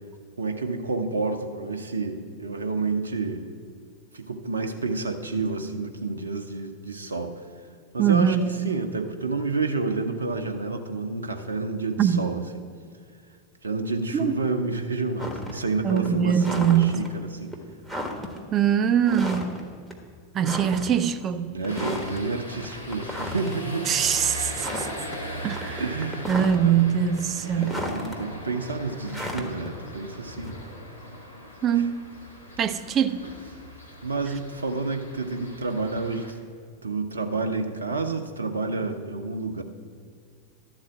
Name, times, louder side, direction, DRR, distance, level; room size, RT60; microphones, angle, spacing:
voice 1, 0.4-3.5 4.1-7.4 7.9-12.4 13.6-17.5 21.5-23.9 25.8-26.3 26.6-26.8 27.4-30.5 31.7-31.9 34.0-36.4 36.8-39.6, right 3 dB, 75° right, 0.7 m, -29 dB
voice 2, 8.0-8.7 12.0-12.3 14.1-14.4 15.8-17.0 18.5-19.6 20.3-21.6 23.9-24.9 25.4-25.8 26.3-27.8 31.6-32.1 32.6-33.3, right 8 dB, 30° right, 0.5 m, -23 dB
sound 1, 15.2-15.6 15.9-17.1 17.5-17.6 17.8-18.4 19.0-19.6 19.9-20.0 20.4-21.1 21.6-22.2 22.6-23.6 24.0-24.2 24.5-25.2 25.5-26.8 27.2-28.1 29.1-30.8, left 1 dB, ahead, 1.4 m, -34 dB
sound 2, 21.7-36.3, left 1 dB, 80° left, 1.3 m, -40 dB
12.5 x 4.1 x 7.7 m
figure-of-eight pair, 90°, 0 cm